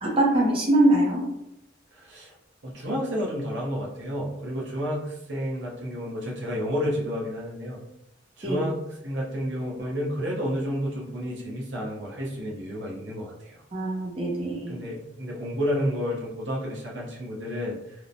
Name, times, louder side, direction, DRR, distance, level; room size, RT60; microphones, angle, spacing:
voice 1, 0.0-1.2 8.4-8.6 13.7-14.8, right 1 dB, 30° right, -4 dB, 0.5 m, -23 dB
voice 2, 1.9-2.3 2.6-7.8 8.4-13.6 14.7-17.9, equal, 70° right, -3 dB, 0.7 m, -31 dB
2.9 x 2.0 x 2.5 m, 0.83 s
head